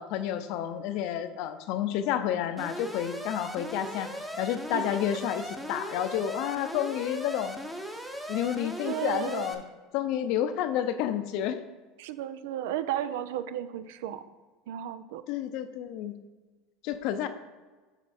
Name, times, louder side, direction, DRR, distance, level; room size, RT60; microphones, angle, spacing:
voice 1, 0.0-4.1 4.4-7.6 8.3-9.6 9.9-11.6 15.3-16.1 16.8-17.3, left 10 dB, 60° left, 10 dB, 0.6 m, -30 dB
Alarm, 2.6-9.5, equal, ahead, 0.8 m, -38 dB
voice 2, 8.8-9.5 12.0-14.2 14.7-15.2, right 11 dB, 80° right, 13 dB, 0.5 m, -34 dB
8.0 x 5.2 x 4.3 m, 1.3 s
supercardioid pair, 140°, 0 cm